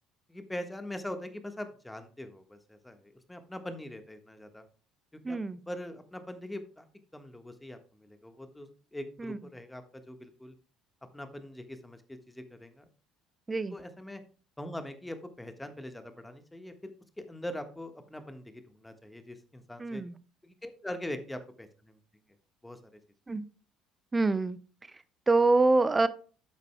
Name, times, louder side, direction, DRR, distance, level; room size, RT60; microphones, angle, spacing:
voice 1, 0.3-4.6 5.3-5.4 5.7-6.9 7.1-10.5 11.1-12.9 13.7-14.2 14.6-16.9 17.2-20.0 20.4-22.0 22.6-23.0, left 1 dB, 10° left, 8 dB, 1.4 m, -42 dB
voice 2, 5.2-5.6 9.2-9.4 13.5-13.7 19.8-20.1 23.3-23.4 24.1-24.6 25.3-26.1, right 3 dB, 20° right, 15 dB, 0.6 m, -25 dB
11.5 x 8.2 x 2.2 m, 0.39 s
figure-of-eight pair, 55°, 0 cm